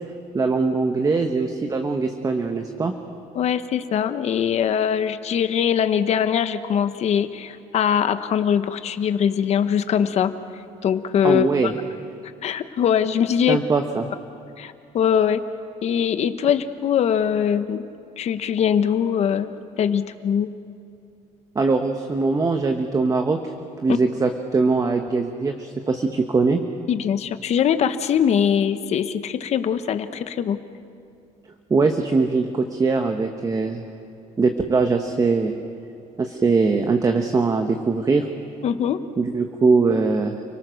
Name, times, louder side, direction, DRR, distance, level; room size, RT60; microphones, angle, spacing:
voice 1, 0.3-2.9 11.2-11.7 13.5-14.1 21.5-23.4 23.8-26.6 31.7-33.8 34.4-35.5 36.2-38.3 39.2-40.3, right 4 dB, 25° right, 5 dB, 1.3 m, -21 dB
voice 2, 3.3-10.3 10.8-11.7 12.4-13.6 14.6-15.4 15.8-17.8 18.2-19.5 19.8-20.5 23.9-24.0 26.9-30.6 38.6-39.0, left 8 dB, 55° left, 10 dB, 1.1 m, -22 dB
30.0 x 18.5 x 6.5 m, 2.5 s
cardioid pair, 105°, 13 cm